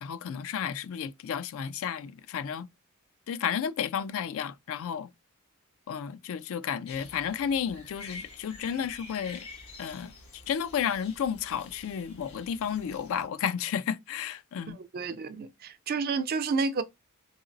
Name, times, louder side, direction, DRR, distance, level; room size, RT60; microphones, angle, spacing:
voice 1, 0.0-2.7 3.3-5.1 5.9-9.5 9.8-14.8, left 8 dB, 65° left, 0.3 m, -32 dB
sound 1, 6.9-13.3, left 3 dB, 90° left, 1.5 m, -48 dB
voice 2, 14.7-16.8, right 4 dB, 45° right, 0.4 m, -30 dB
4.1 x 2.8 x 2.6 m
head